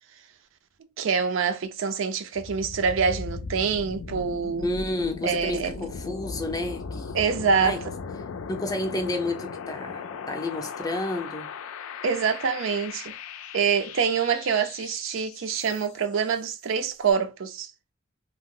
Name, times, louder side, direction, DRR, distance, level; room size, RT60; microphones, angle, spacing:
voice 1, 1.0-4.7 5.2-5.8 7.1-7.9 12.0-13.1 13.5-17.7, right 6 dB, 65° right, 0.4 m, -25 dB
sound 1, 2.3-16.2, left 5 dB, 80° left, 0.4 m, -38 dB
voice 2, 4.6-7.1 7.6-7.8 8.5-11.5, left 2 dB, 20° left, 0.5 m, -30 dB
2.8 x 2.0 x 3.6 m
head